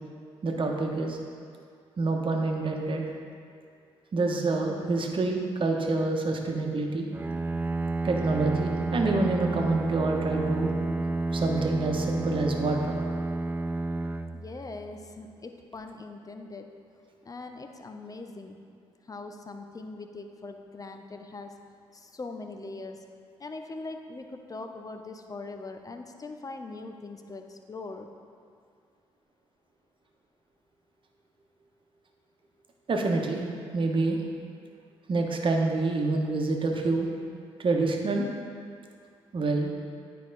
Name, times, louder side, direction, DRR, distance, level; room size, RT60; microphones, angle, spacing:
voice 1, 0.4-1.2 2.0-3.0 4.1-7.1 8.0-10.7 11.3-13.0 32.9-33.4 33.7-34.2 35.1-37.1 37.6-38.3 39.3-39.7, right 3 dB, 45° right, 1 dB, 1.1 m, -27 dB
Bowed string instrument, 7.1-15.1, right 2 dB, 15° right, 0.3 m, -30 dB
voice 2, 14.3-16.7 17.2-18.6 19.1-21.5 21.9-23.0 23.4-28.1, left 3 dB, 30° left, 5 dB, 0.7 m, -41 dB
9.4 x 4.7 x 4.0 m, 2.2 s
supercardioid pair, 50°, 12 cm